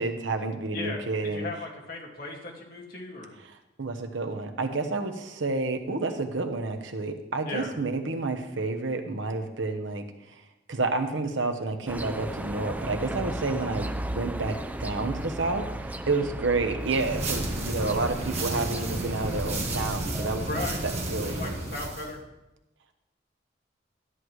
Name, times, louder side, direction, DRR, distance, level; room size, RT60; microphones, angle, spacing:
voice 1, 0.0-1.5 3.8-10.0 10.7-13.9 14.1-21.5, right 3 dB, 85° right, 6 dB, 1.0 m, -30 dB
voice 2, 0.7-3.3 7.5-7.7 20.4-20.8 21.2-22.2, left 2 dB, 50° left, -1 dB, 2.1 m, -36 dB
sound 1, 11.9-20.4, right 1 dB, 10° right, 0.4 m, -36 dB
sound 2, 16.8-22.1, right 2 dB, 35° right, 1.6 m, -32 dB
12.5 x 9.6 x 3.2 m, 0.95 s
head